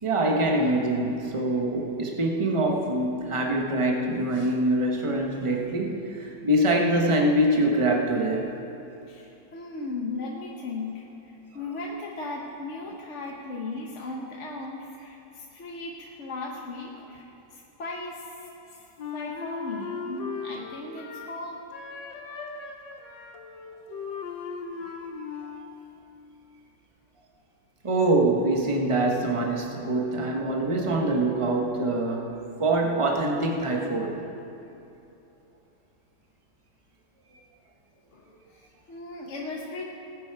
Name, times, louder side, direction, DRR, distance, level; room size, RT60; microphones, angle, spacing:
voice 1, 0.0-8.5 27.8-32.3 32.6-34.2, right 1 dB, 20° right, 1 dB, 1.0 m, -24 dB
voice 2, 9.1-18.9 19.1-21.6 24.8-24.9 38.1-39.9, left 3 dB, 50° left, -1 dB, 1.2 m, -37 dB
Wind instrument woodwind instrument, 19.0-21.4 21.7-25.8, left 5 dB, 85° left, 1.6 m, -37 dB
19.0 x 8.4 x 4.7 m, 2.9 s
omnidirectional pair, 1.9 m